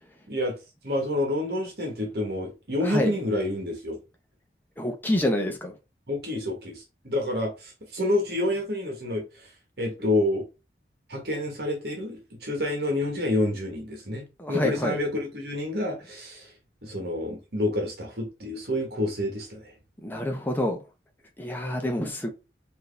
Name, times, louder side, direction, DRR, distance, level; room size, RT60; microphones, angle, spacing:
voice 1, 0.3-0.6 0.8-4.0 6.1-9.5 9.8-10.4 11.1-16.5 16.8-19.7, left 1 dB, 60° right, 1.4 m, -28 dB
voice 2, 2.8-3.1 4.8-5.7 14.4-15.0 20.0-20.8 21.4-22.3, left 1 dB, 10° left, 0.7 m, -27 dB
4.5 x 2.8 x 3.3 m
head